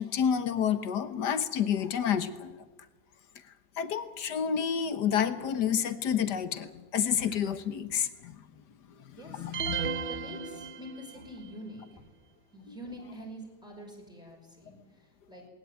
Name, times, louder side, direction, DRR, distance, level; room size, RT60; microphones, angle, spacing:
voice 1, 0.0-2.6 3.8-8.4 9.4-9.9, left 8 dB, 65° left, 11 dB, 1.8 m, -29 dB
voice 2, 9.2-12.0 12.5-15.4, equal, ahead, 0 dB, 5.5 m, -46 dB
sound 1, 9.5-11.4, right 6 dB, 65° right, 0.5 m, -35 dB
20.0 x 18.5 x 9.2 m, 1.3 s
omnidirectional pair, 2.0 m